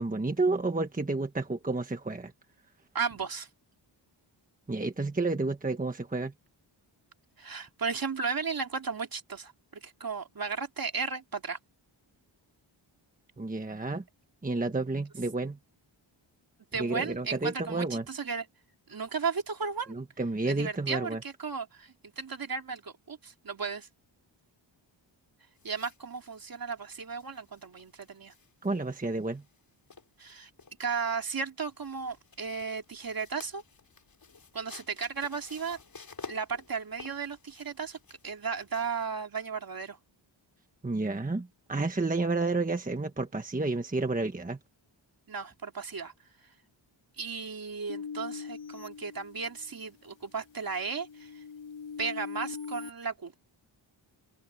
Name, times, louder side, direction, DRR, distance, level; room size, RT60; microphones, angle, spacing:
voice 1, 0.0-2.3 4.7-6.3 13.4-14.0 14.4-15.6 16.7-18.0 19.9-21.2 28.6-29.4 40.8-44.6, right 3 dB, 15° right, 1.3 m, -30 dB
voice 2, 2.9-3.5 7.4-11.6 16.7-18.5 18.9-20.0 20.5-23.9 25.6-28.3 30.2-30.5 30.8-33.6 34.5-35.8 36.3-38.0 38.2-40.0 45.3-46.1 47.2-51.4 52.0-53.3, right 5 dB, 45° right, 2.6 m, -35 dB
sound 1, 25.6-39.0, left 5 dB, 45° left, 4.6 m, -52 dB
sound 2, 47.9-49.9 50.4-52.9, left 6 dB, 70° left, 3.2 m, -42 dB
open air
wide cardioid pair, 180°, 47 cm